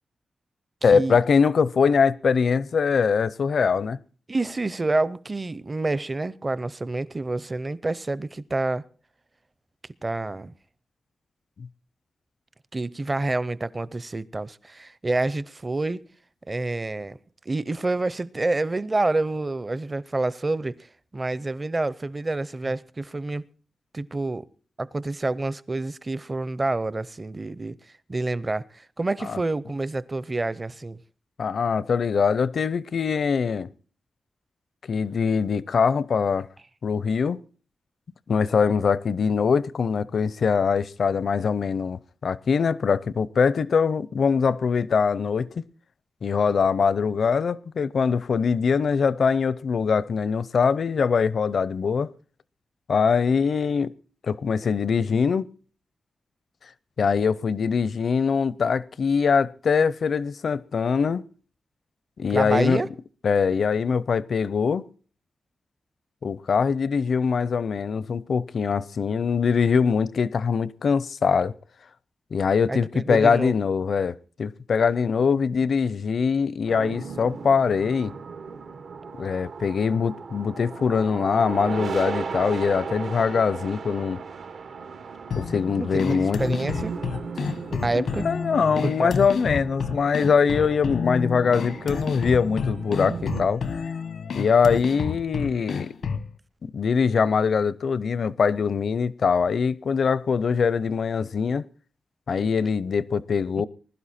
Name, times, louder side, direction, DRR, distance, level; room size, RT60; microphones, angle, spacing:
voice 1, 0.8-4.0 11.6-11.7 29.3-29.4 31.4-33.7 34.9-36.5 36.8-37.4 38.3-45.5 46.2-52.1 52.9-53.9 54.2-55.4 57.0-61.2 62.2-62.8 63.2-64.8 66.2-71.5 72.3-78.1 79.2-84.2 85.4-86.6 87.9-93.6 94.4-95.9 96.6-101.6 102.3-103.7, left 6 dB, 60° left, 0.6 m, -23 dB
voice 2, 4.3-8.8 10.0-10.5 12.7-16.0 16.5-17.2 17.5-20.8 21.1-23.4 23.9-24.5 24.8-27.8 28.1-31.0 62.3-62.9 72.7-73.6 85.8-87.0 87.7-88.3 88.7-89.2, right 2 dB, 25° right, 0.6 m, -28 dB
sound 1, 76.7-93.5, right 5 dB, 85° right, 1.9 m, -36 dB
sound 2, 85.3-96.3, left 6 dB, 90° left, 1.2 m, -30 dB
20.5 x 12.0 x 4.2 m
wide cardioid pair, 170°, 0 cm